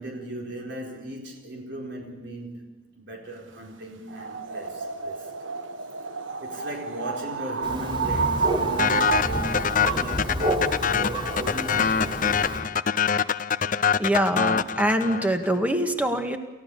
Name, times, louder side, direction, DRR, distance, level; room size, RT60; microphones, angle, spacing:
voice 1, 0.0-5.3 6.4-10.4 10.8-12.4, right 1 dB, 65° right, 4.5 m, -37 dB
sound 1, 4.1-9.9, right 5 dB, 85° right, 1.2 m, -30 dB
Thunder, 7.6-12.6, right 1 dB, 25° right, 3.9 m, -30 dB
sound 2, 8.8-15.5, left 7 dB, 45° left, 0.6 m, -24 dB
voice 2, 14.0-16.4, right 1 dB, 10° right, 1.8 m, -24 dB
29.0 x 15.5 x 7.0 m
head